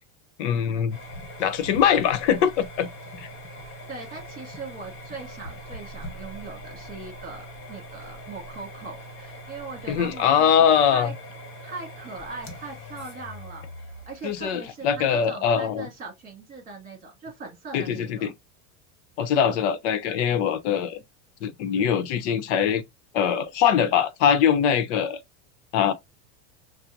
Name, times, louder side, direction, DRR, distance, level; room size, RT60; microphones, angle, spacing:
voice 1, 0.4-1.0 1.4-2.9 3.2-3.3 9.9-11.1 14.2-15.9 17.7-18.3 19.2-21.0 21.4-22.8 23.1-25.2 25.7-25.9, left 8 dB, 80° left, 0.8 m, -22 dB
sound 1, 0.9-15.4, equal, 35° left, 1.4 m, -42 dB
voice 2, 3.6-11.1 11.6-18.3, right 4 dB, 25° right, 2.0 m, -40 dB
5.8 x 2.2 x 2.5 m
supercardioid pair, 160°, 35 cm